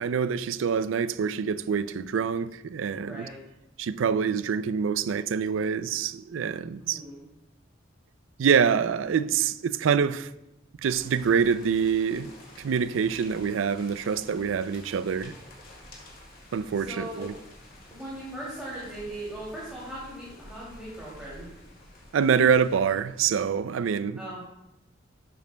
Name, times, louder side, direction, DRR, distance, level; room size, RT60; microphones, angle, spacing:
voice 1, 0.0-3.3 3.8-7.0 8.4-10.3 10.8-12.3 12.6-15.3 16.5-17.3 22.1-24.2, right 6 dB, 85° right, 0.4 m, -25 dB
voice 2, 3.1-3.4 6.8-7.2 16.7-17.3 17.9-21.5 24.2-24.4, right 1 dB, 5° right, 2.5 m, -39 dB
sound 1, 10.8-23.8, left 1 dB, 50° left, 2.0 m, -50 dB
11.5 x 8.0 x 2.2 m
head